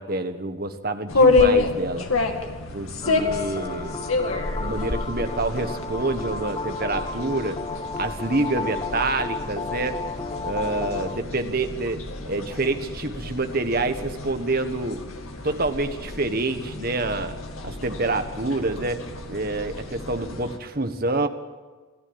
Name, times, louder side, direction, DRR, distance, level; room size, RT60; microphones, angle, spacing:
voice 1, 0.0-2.1 2.7-4.0 4.6-7.6 8.0-10.0 10.4-15.0 15.4-17.4 17.6-19.0 19.3-21.3, right 2 dB, 45° right, 8 dB, 1.4 m, -27 dB
sound 1, 1.1-20.6, left 3 dB, 85° left, 2.3 m, -28 dB
sound 2, 3.0-11.2, left 4 dB, 20° left, 0.8 m, -33 dB
24.0 x 15.0 x 9.0 m, 1.3 s
head